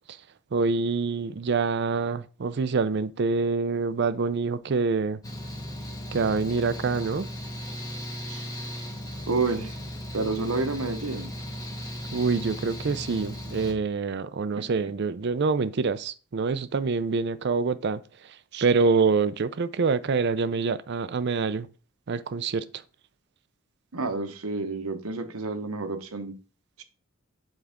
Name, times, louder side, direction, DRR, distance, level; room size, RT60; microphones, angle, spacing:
voice 1, 0.5-5.2 6.1-7.3 8.3-8.4 12.1-18.0 18.5-21.7 22.1-22.6, right 4 dB, 50° right, 0.4 m, -26 dB
Mechanical fan, 5.2-13.7, equal, 15° left, 1.0 m, -36 dB
voice 2, 9.3-9.8 10.1-11.3 14.6-14.7 23.9-26.3 26.8-26.9, right 3 dB, 85° right, 1.0 m, -29 dB
7.9 x 4.8 x 3.6 m
head